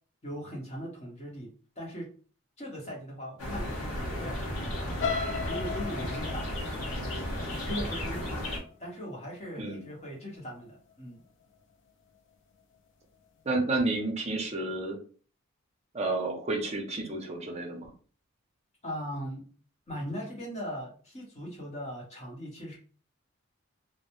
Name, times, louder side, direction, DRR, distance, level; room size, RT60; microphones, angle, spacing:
voice 1, 0.2-1.5 1.8-2.1 2.6-4.4 4.8-5.1 5.5-6.5 6.7-7.2 7.6-8.4 8.8-11.2 18.8-19.5 19.9-22.8, equal, 30° left, -2 dB, 0.8 m, -39 dB
sound 1, 3.4-8.6, left 1 dB, 85° left, 0.7 m, -34 dB
sound 2, 5.0-9.0 9.4-9.8 10.1-10.2, left 5 dB, 60° left, 0.3 m, -36 dB
voice 2, 9.6-9.9 13.5-15.0 15.9-17.9, right 2 dB, 30° right, 1 dB, 0.5 m, -31 dB
2.1 x 2.0 x 2.9 m, 0.40 s
head